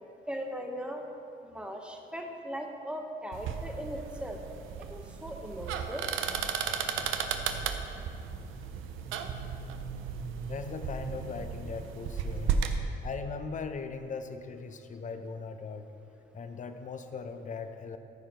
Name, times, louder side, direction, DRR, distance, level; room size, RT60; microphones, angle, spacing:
voice 1, 0.3-1.1 1.4-4.4 4.8-6.1, equal, 5° right, 3 dB, 1.0 m, -39 dB
sound 1, 3.3-12.8, right 6 dB, 90° right, 0.6 m, -34 dB
voice 2, 10.5-12.6 12.9-15.9 16.3-18.0, left 5 dB, 40° left, 8 dB, 0.7 m, -39 dB
14.0 x 4.9 x 4.5 m, 2.6 s
cardioid pair, 90°, 20 cm